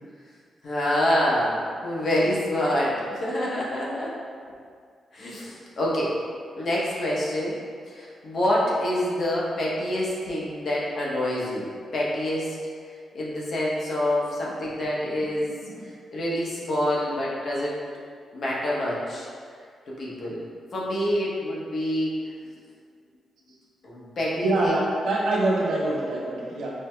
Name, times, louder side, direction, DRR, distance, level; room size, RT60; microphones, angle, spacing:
voice 1, 0.6-4.1 5.1-6.1 6.6-7.5 7.9-12.6 13.1-15.6 16.1-17.8 18.3-19.3 19.9-20.4 20.7-22.2 23.8-24.7, left 1 dB, 60° left, -5 dB, 0.8 m, -26 dB
voice 2, 24.4-26.7, right 2 dB, 85° right, -5 dB, 0.6 m, -25 dB
4.5 x 2.2 x 2.2 m, 2.1 s
cardioid pair, 70°, 0 cm